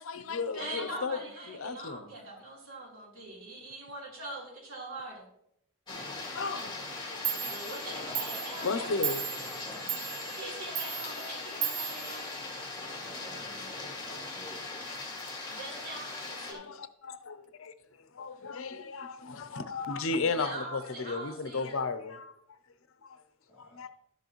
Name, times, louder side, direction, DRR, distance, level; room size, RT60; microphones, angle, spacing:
voice 1, 0.0-1.2 1.5-2.1 6.3-6.7 7.1-7.7 8.6-9.3 16.5-22.3 23.0-23.2 23.5-23.9, left 4 dB, 65° left, 11 dB, 0.6 m, -35 dB
voice 2, 0.5-5.3 7.5-9.2 10.3-12.3 15.5-16.7 20.2-21.8, right 2 dB, 75° right, -4 dB, 3.7 m, -42 dB
sound 1, 5.9-16.5, left 3 dB, 20° left, 1.9 m, -40 dB
Clock, 6.9-7.0 7.2-12.9, right 8 dB, 35° right, 0.7 m, -37 dB
voice 3, 13.0-14.6 23.5-23.9, right 1 dB, 10° right, -6 dB, 3.0 m, -52 dB
12.0 x 8.0 x 3.0 m, 0.75 s
head